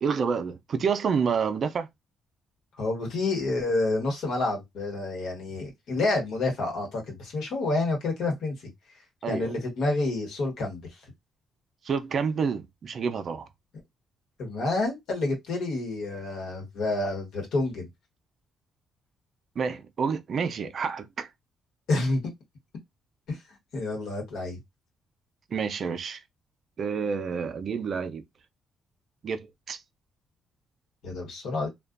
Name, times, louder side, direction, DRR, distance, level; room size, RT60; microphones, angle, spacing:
voice 1, 0.0-1.9 9.2-9.5 11.8-13.5 19.6-21.3 25.5-26.2 26.8-28.2 29.2-29.8, right 6 dB, 55° right, 0.4 m, -29 dB
voice 2, 2.8-8.5 9.3-10.8 14.4-17.9 21.9-22.2 23.3-23.4 23.7-24.6 31.0-31.7, left 2 dB, 80° left, 1.2 m, -28 dB
2.4 x 2.2 x 2.4 m
cardioid pair, 90°, 0 cm